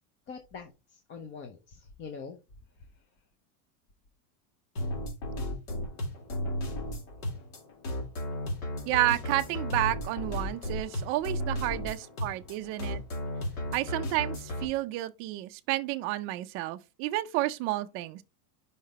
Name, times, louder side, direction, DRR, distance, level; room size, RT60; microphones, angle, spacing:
voice 1, 0.3-2.4, left 5 dB, 25° left, 0.7 m, -44 dB
sound 1, 4.8-14.6, left 1 dB, 70° left, 3.0 m, -34 dB
voice 2, 8.9-13.0 13.7-18.2, right 17 dB, 30° right, 0.4 m, -31 dB
5.5 x 3.8 x 4.6 m
supercardioid pair, 150°, 44 cm